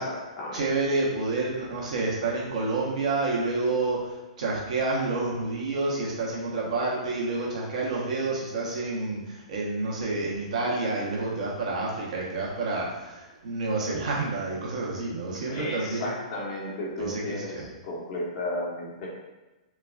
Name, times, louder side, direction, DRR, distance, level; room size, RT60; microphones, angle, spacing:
voice 1, 0.0-0.6 15.5-19.1, left 1 dB, 55° left, -3 dB, 1.1 m, -34 dB
voice 2, 0.5-16.1 17.0-17.7, right 3 dB, 70° right, -3 dB, 1.0 m, -29 dB
4.4 x 2.3 x 2.4 m, 1.1 s
hypercardioid pair, 120°, 4 cm